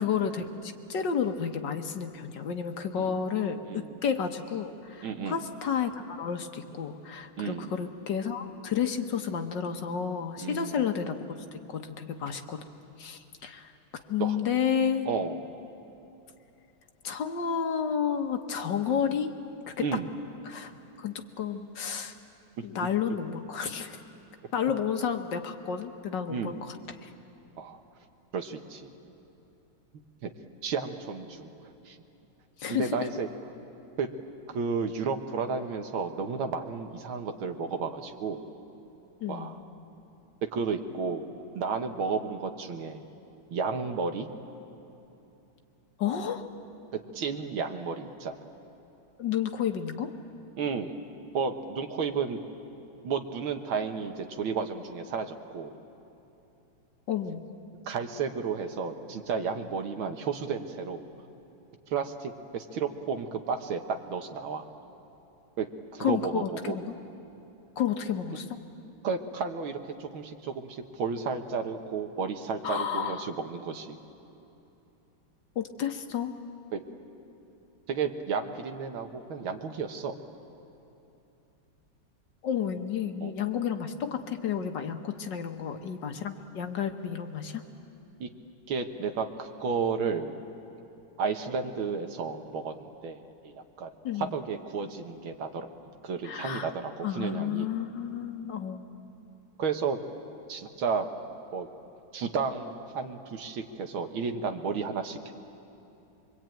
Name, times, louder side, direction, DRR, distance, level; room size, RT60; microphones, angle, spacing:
voice 1, 0.0-11.2 11.7-12.6 13.0-15.1 17.0-19.3 19.7-19.9 20.4-20.7 21.0-22.1 22.6-24.0 24.5-26.8 27.0-27.1 32.6-33.1 39.2-39.6 46.0-46.5 49.2-50.1 57.1-57.4 66.0-66.9 67.8-68.6 72.6-73.3 75.5-76.4 82.4-87.6 94.0-94.3 96.2-96.7 97.0-98.9, left 7 dB, 60° left, 6 dB, 1.6 m, -31 dB
voice 2, 5.0-5.4 7.4-7.7 10.4-10.8 14.2-14.4 15.1-15.4 19.8-20.1 26.3-26.6 27.6-27.8 28.3-28.9 30.2-30.3 30.6-31.5 31.9-32.0 32.7-33.3 34.0-34.1 34.5-38.4 39.3-39.6 40.5-41.3 41.6-43.0 43.5-44.3 46.9-48.4 50.6-50.9 51.3-52.4 53.0-55.7 57.9-61.1 61.9-64.7 65.6-65.7 65.9-66.8 69.0-74.0 76.7-76.8 77.9-80.1 83.2-83.3 88.2-88.3 88.7-90.4 91.2-92.7 93.0-93.2 93.4-93.9 94.2-95.7 96.0-97.7 99.6-100.0 100.5-101.1 101.5-101.7 102.1-105.3, right 5 dB, 75° right, 6 dB, 2.0 m, -32 dB
24.0 x 23.5 x 9.1 m, 2.9 s
omnidirectional pair, 2.3 m